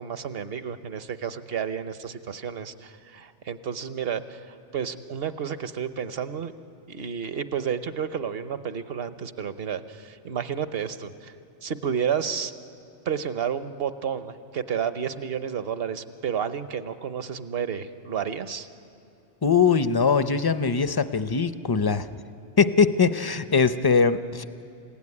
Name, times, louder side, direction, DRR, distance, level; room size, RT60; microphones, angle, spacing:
voice 1, 0.0-6.5 6.9-11.3 11.6-12.5 13.0-18.7, right 8 dB, 60° right, 11 dB, 1.1 m, -31 dB
voice 2, 19.4-22.1 22.6-24.4, left 5 dB, 25° left, 12 dB, 0.5 m, -21 dB
28.5 x 16.5 x 9.7 m, 2.5 s
omnidirectional pair, 1.2 m